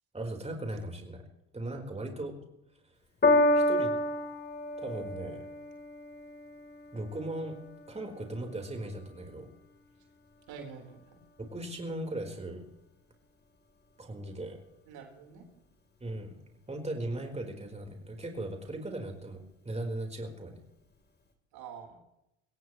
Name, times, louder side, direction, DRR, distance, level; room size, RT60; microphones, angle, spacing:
voice 1, 0.1-1.2 1.5-2.3 3.5-3.9 4.8-5.5 6.9-7.6 7.9-9.5 11.4-12.6 14.0-14.6 16.0-16.3 16.7-20.6, right 1 dB, 15° right, 2 dB, 4.5 m, -38 dB
Piano, 3.2-9.8 10.6-10.7, left 1 dB, 25° left, 4.0 m, -30 dB
voice 2, 10.5-11.2 14.9-15.5 21.5-22.0, right 6 dB, 65° right, 2 dB, 4.4 m, -46 dB
24.0 x 17.0 x 3.2 m, 0.83 s
supercardioid pair, 80°, 39 cm